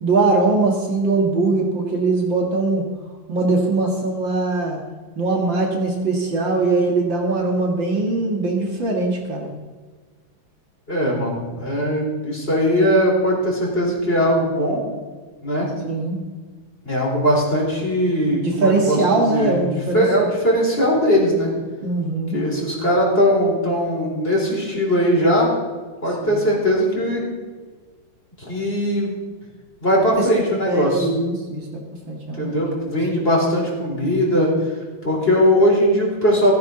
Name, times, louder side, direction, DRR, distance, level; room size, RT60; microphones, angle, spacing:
voice 1, 0.0-2.9 3.3-4.8 5.2-9.5 15.8-16.2 18.4-20.3 21.8-22.4 30.2-30.3 30.6-31.8 32.1-32.6, right 3 dB, 60° right, 0 dB, 2.8 m, -21 dB
voice 2, 10.9-14.8 15.4-15.7 16.8-21.5 22.3-25.5 26.0-27.2 28.5-29.2 29.8-31.1 32.4-34.5 35.0-36.5, equal, 25° left, -2 dB, 4.5 m, -20 dB
16.0 x 15.5 x 4.0 m, 1.4 s
omnidirectional pair, 2.4 m